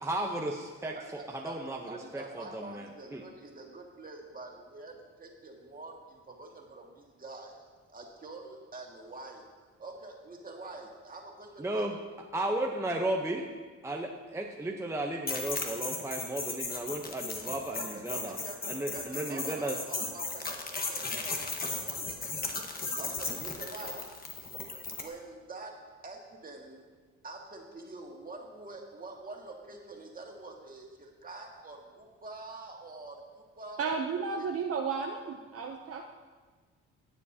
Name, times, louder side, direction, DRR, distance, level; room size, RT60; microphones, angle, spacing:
voice 1, 0.0-3.2 11.6-12.0 12.3-13.4 13.8-18.4 18.7-19.8, right 1 dB, 10° right, 0 dB, 0.8 m, -34 dB
voice 2, 0.9-1.6 1.9-7.6 7.9-9.4 9.8-11.9 17.7-18.6 18.9-22.3 23.0-24.0 25.0-25.7 26.0-26.8 27.2-33.9 34.4-34.5, right 2 dB, 30° right, 0 dB, 2.0 m, -46 dB
sound 1, 15.3-25.1, left 3 dB, 30° left, 1.3 m, -36 dB
voice 3, 33.8-36.1, right 5 dB, 50° right, 2 dB, 0.7 m, -33 dB
17.0 x 7.3 x 2.8 m, 1.4 s
cardioid pair, 90°, 30 cm